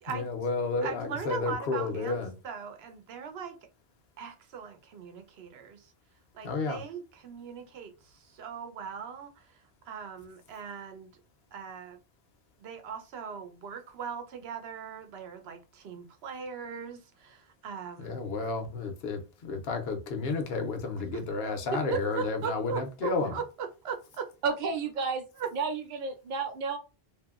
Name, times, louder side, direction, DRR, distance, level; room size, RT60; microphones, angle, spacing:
voice 1, 0.1-2.3 6.4-6.8 18.0-23.3, left 3 dB, 75° left, 0.9 m, -31 dB
voice 2, 0.8-2.2 2.4-3.5 4.2-5.9 6.3-9.5 9.9-11.2 11.5-12.0 12.6-18.2 21.9-24.3 25.4-25.5, right 6 dB, 80° right, 0.9 m, -39 dB
voice 3, 24.4-25.2 25.5-26.8, right 5 dB, 60° right, 0.6 m, -31 dB
2.7 x 2.6 x 2.4 m
omnidirectional pair, 1.0 m